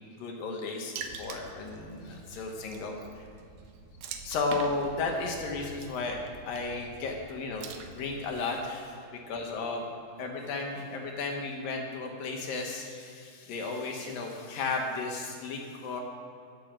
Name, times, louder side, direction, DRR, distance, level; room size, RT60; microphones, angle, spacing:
voice 1, 0.2-3.3 4.2-6.2 6.5-9.9 10.2-16.0, left 3 dB, 75° left, 2 dB, 3.1 m, -34 dB
Water / Splash splatter, 1.0-8.4, right 6 dB, 80° right, 2.7 m, -45 dB
10.5 x 10.0 x 7.4 m, 2.4 s
omnidirectional pair, 4.2 m